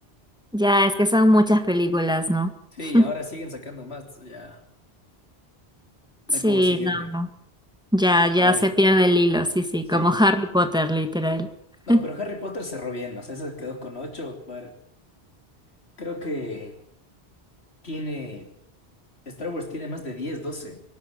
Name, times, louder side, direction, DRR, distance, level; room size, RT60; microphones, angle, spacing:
voice 1, 0.5-2.5 2.9-3.1 6.4-7.3 7.9-11.5 11.9-12.0, left 1 dB, 5° right, 7 dB, 1.8 m, -20 dB
voice 2, 2.7-4.6 6.3-7.1 8.4-8.7 9.9-10.2 11.9-14.8 16.0-16.8 17.8-18.5 19.3-20.8, left 2 dB, 85° left, 4 dB, 3.6 m, -34 dB
23.0 x 12.5 x 9.2 m, 0.69 s
omnidirectional pair, 1.1 m